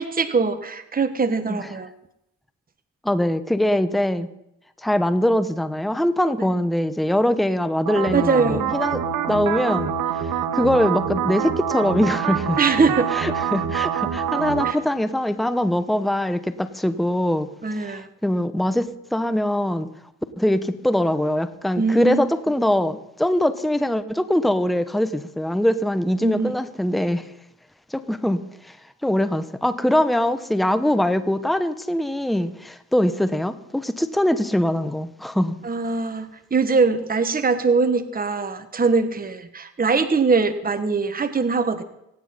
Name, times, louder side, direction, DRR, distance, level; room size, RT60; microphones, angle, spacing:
voice 1, 0.0-1.9 6.4-6.5 8.1-8.7 12.6-13.1 14.6-14.8 17.6-18.1 21.8-22.2 26.2-26.6 35.6-41.8, right 4 dB, 25° right, 10 dB, 1.3 m, -22 dB
voice 2, 3.0-4.3 4.8-9.0 9.3-12.6 13.1-17.5 17.7-19.9 20.4-27.3 27.9-28.8 29.0-35.5, left 1 dB, ahead, 12 dB, 1.1 m, -22 dB
sound 1, 7.9-14.7, right 8 dB, 60° right, 1.5 m, -25 dB
27.0 x 9.6 x 4.2 m, 0.81 s
hypercardioid pair, 50°, 37 cm